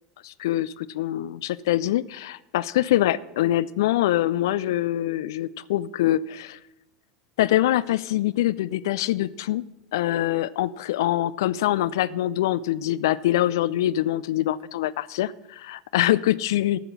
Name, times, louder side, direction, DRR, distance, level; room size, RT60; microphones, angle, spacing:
voice 1, 0.2-6.6 7.4-9.6 9.9-16.8, left 14 dB, 65° left, 17 dB, 0.4 m, -24 dB
13.5 x 7.6 x 6.4 m, 0.92 s
figure-of-eight pair, 80°, 2 cm